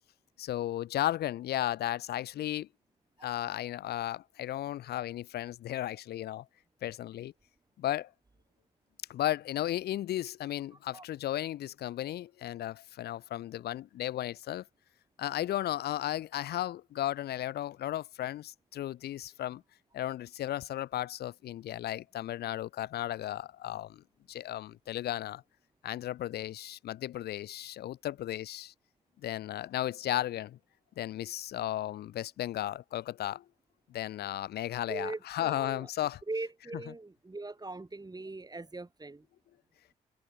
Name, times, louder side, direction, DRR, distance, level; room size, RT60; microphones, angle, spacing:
voice 1, 0.4-2.7 3.2-6.4 6.8-7.3 7.8-8.1 9.1-14.6 15.2-19.6 19.9-24.0 24.3-25.4 25.8-28.7 29.2-30.6 31.0-33.4 33.9-36.2, left 13 dB, 65° left, 1.0 m, -35 dB
voice 2, 34.9-35.9 36.3-39.2, right 2 dB, 20° right, 4.5 m, -40 dB
hypercardioid pair, 45°, 18 cm